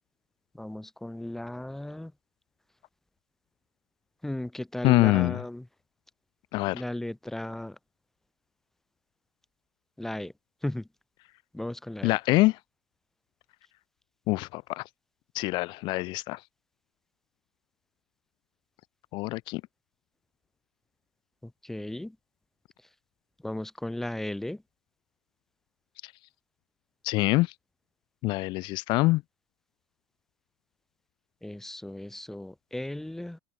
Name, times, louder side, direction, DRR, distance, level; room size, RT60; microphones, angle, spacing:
voice 1, 0.5-2.1 4.2-5.7 6.7-7.8 10.0-10.3 10.6-10.9 11.5-12.2 21.4-22.2 22.8-22.9 23.4-24.6 31.4-33.4, left 1 dB, ahead, 1.8 m, -36 dB
voice 2, 4.8-5.4 6.5-6.8 12.0-12.5 14.3-14.8 15.3-16.4 19.1-19.6 27.0-27.5 28.2-29.2, left 21 dB, 30° left, 0.8 m, -24 dB
supercardioid pair, 180°, 15 cm